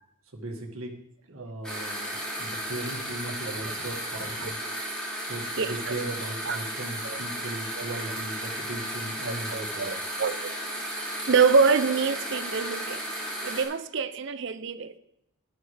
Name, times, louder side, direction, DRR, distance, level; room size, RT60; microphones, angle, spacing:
voice 1, 0.2-0.9 1.2-4.6 5.2-10.0, right 1 dB, 80° right, 1 dB, 2.1 m, -37 dB
sound 1, 1.6-13.6, equal, 5° left, 2.9 m, -34 dB
voice 2, 9.3-10.5 11.3-13.0 13.4-14.9, right 5 dB, 55° right, 12 dB, 0.6 m, -25 dB
12.0 x 11.0 x 3.4 m, 0.77 s
head